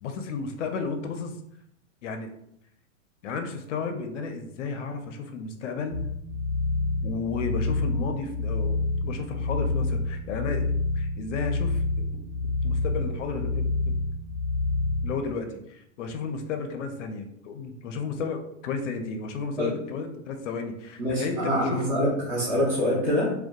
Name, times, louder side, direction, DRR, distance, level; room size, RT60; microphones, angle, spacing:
voice 1, 0.0-1.4 2.0-2.3 3.2-6.0 7.0-10.7 10.9-12.2 12.6-14.0 15.0-21.8 23.0-23.1, left 4 dB, 65° left, 5 dB, 0.5 m, -33 dB
sound 1, 5.9-15.1, left 2 dB, 20° left, 0.6 m, -28 dB
voice 2, 21.0-23.3, equal, 25° right, -5 dB, 0.6 m, -25 dB
2.6 x 2.1 x 2.2 m, 0.76 s
supercardioid pair, 160°, 39 cm